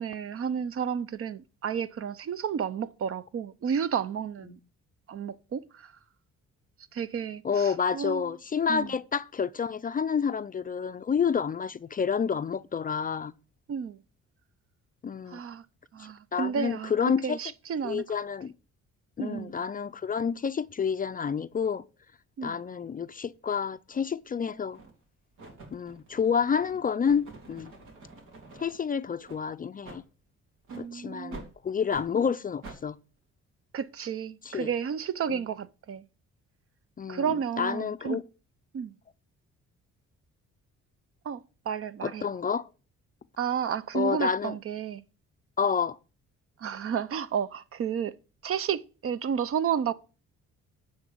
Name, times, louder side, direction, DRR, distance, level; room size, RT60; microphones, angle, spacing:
voice 1, 0.0-4.6 5.1-5.9 6.9-8.2 8.7-8.9 13.7-14.0 15.3-15.6 15.9-16.9 17.2-18.0 19.2-19.5 22.4-22.6 30.7-31.5 33.7-36.0 37.1-38.2 38.7-38.9 41.3-41.4 41.7-42.2 43.4-45.0 46.6-48.1 48.4-49.9, right 7 dB, 50° right, 0.6 m, -31 dB
voice 2, 7.4-13.3 15.0-15.4 16.3-17.4 17.8-18.5 19.2-21.8 22.4-24.8 25.7-27.7 28.6-30.0 30.8-33.0 34.4-34.7 35.3-35.4 37.0-38.2 42.0-42.7 43.9-44.6 45.6-46.0, left 6 dB, 30° left, 0.4 m, -29 dB
sound 1, 23.9-24.1 24.7-25.0 25.4-28.8 29.2-29.4 29.8-30.0 30.6-30.9 31.3-31.5 31.9-32.1 32.6-32.8, right 3 dB, 90° right, 2.5 m, -47 dB
9.6 x 3.8 x 7.1 m
cardioid pair, 90°, 30 cm